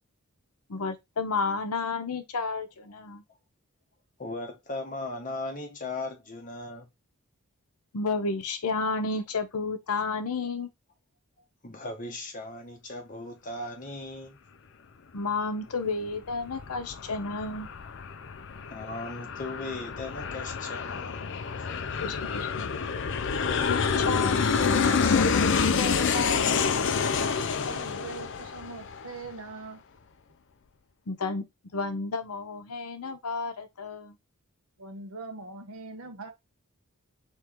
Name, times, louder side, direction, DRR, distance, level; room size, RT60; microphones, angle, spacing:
voice 1, 0.7-3.2 7.9-10.7 15.1-17.7 22.0-22.7 23.6-25.5 25.8-26.7 31.1-31.4 31.7-34.2, left 4 dB, 85° left, 0.8 m, -32 dB
voice 2, 4.2-6.9 11.6-14.4 18.7-21.2, left 2 dB, 35° left, 1.1 m, -37 dB
Aircraft, 16.1-29.3, left 5 dB, 55° left, 0.5 m, -28 dB
voice 3, 27.6-29.8 34.8-36.3, right 3 dB, 65° right, 1.0 m, -41 dB
4.5 x 3.1 x 3.5 m
head